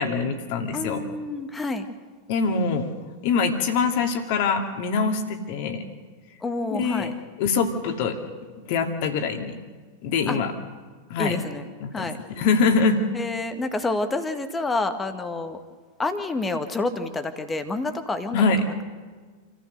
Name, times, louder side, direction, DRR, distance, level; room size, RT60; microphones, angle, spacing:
voice 1, 0.0-1.0 2.3-2.9 3.2-5.8 6.7-7.1 7.4-8.2 8.7-9.5 10.0-10.5 11.1-11.4 11.8-13.0 18.3-18.6, left 4 dB, 50° left, 5 dB, 2.5 m, -24 dB
voice 2, 0.7-1.9 6.4-7.1 10.3-10.4 11.2-11.7 11.9-12.2 13.1-15.6 16.0-18.4, left 2 dB, 15° left, 8 dB, 1.8 m, -28 dB
28.0 x 15.0 x 6.7 m, 1.5 s
figure-of-eight pair, 90°, 0 cm